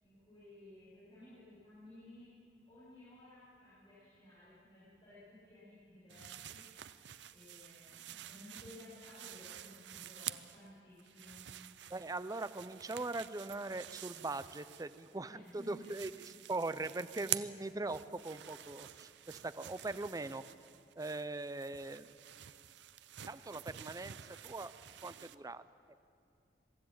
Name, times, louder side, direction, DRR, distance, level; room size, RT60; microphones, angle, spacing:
voice 1, 0.0-2.3 2.7-6.7 7.3-11.5 15.2-15.9, left 1 dB, 30° left, -12 dB, 6.9 m, -56 dB
sound 1, 6.1-10.7 11.0-15.2 15.5-25.4, right 12 dB, 75° right, 0.6 m, -48 dB
voice 2, 11.9-20.4 21.0-22.1 23.3-24.2 24.4-24.7 25.0-25.6, right 2 dB, 20° right, 14 dB, 0.5 m, -41 dB
23.0 x 13.0 x 8.8 m, 2.6 s
head